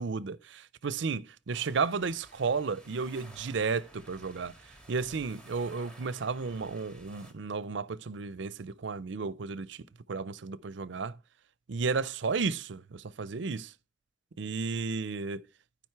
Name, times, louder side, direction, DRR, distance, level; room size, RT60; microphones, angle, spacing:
voice 1, 0.0-4.5 4.9-11.2 11.7-13.7 14.4-15.4, right 4 dB, 65° right, 0.5 m, -33 dB
sound 1, 1.5-7.3, right 1 dB, 5° left, 1.9 m, -54 dB
12.5 x 5.2 x 4.6 m
head